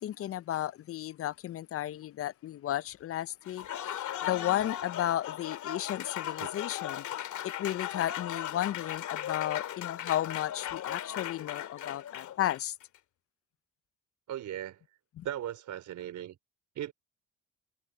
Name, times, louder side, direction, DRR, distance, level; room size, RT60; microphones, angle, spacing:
voice 1, 0.0-3.7 4.2-7.0 7.4-12.7 15.2-15.3, left 12 dB, 50° left, 0.5 m, -33 dB
Applause, 3.4-12.8, left 11 dB, 75° left, 2.3 m, -37 dB
voice 2, 14.3-14.8 15.2-16.4 16.7-16.9, right 11 dB, 75° right, 4.2 m, -37 dB
cardioid pair, 90°, 30 cm